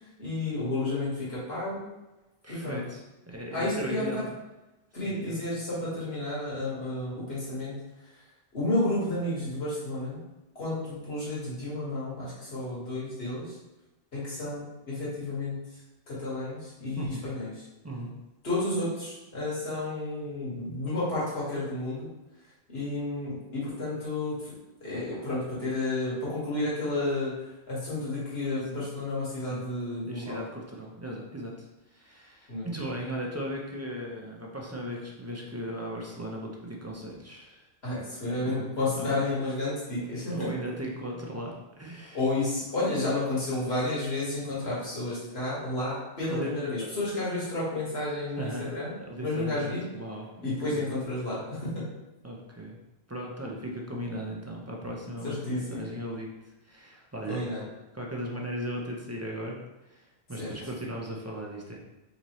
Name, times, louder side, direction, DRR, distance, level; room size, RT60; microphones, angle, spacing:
voice 1, 0.2-1.8 2.5-2.8 3.5-4.0 4.9-7.8 8.5-10.2 10.6-13.6 14.1-15.6 16.1-17.6 18.4-22.1 22.7-24.5 24.8-30.4 32.5-32.7 37.8-40.5 42.1-48.9 49.2-49.8 50.4-51.9 55.2-55.9 57.3-57.6 60.4-60.5, left 2 dB, 75° left, -8 dB, 2.0 m, -31 dB
voice 2, 2.4-4.3 5.0-5.4 17.0-17.2 17.8-18.2 29.5-29.7 30.0-37.7 38.4-39.2 40.3-42.2 42.8-42.9 46.3-46.5 48.4-48.7 49.1-50.9 52.2-52.8 53.1-56.3 56.6-57.4 57.9-59.6 59.9-60.0 60.3-61.8, equal, 20° right, -2 dB, 0.5 m, -37 dB
4.1 x 3.9 x 3.1 m, 1.0 s
omnidirectional pair, 1.1 m